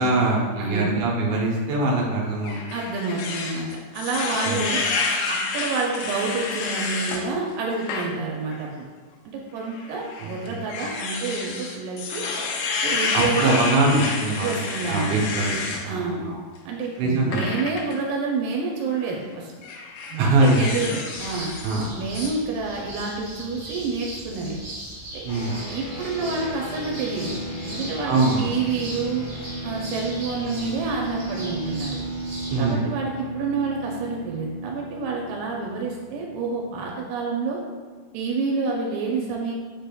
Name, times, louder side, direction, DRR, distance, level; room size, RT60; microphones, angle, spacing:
voice 1, 0.0-2.6 4.5-4.7 10.2-10.6 13.1-16.4 17.0-17.5 20.2-20.7 21.6-21.9 25.2-25.6 28.1-28.5 32.5-32.8, right 2 dB, 70° right, -2 dB, 2.0 m, -23 dB
voice 2, 0.6-0.9 2.7-4.8 5.3-8.9 9.5-12.3 12.8-13.7 14.4-15.2 15.8-16.2 16.7-19.5 20.1-21.5 21.9-24.6 25.1-25.2 25.5-27.4 27.6-29.3 29.6-32.0 32.6-37.6 38.1-39.5, right 4 dB, 90° right, -1 dB, 2.2 m, -28 dB
sound 1, 2.4-7.2 7.7-8.1 8.5-8.6 9.7-15.8 17.3-17.9 18.9-19.1 19.6-21.9 22.1-22.3, left 4 dB, 85° left, 2.2 m, -29 dB
sound 2, 21.1-32.7, right 1 dB, 50° right, 1.1 m, -38 dB
sound 3, 25.3-37.0, right 1 dB, 55° left, 2.4 m, -35 dB
5.7 x 3.4 x 2.2 m, 1.4 s
omnidirectional pair, 3.8 m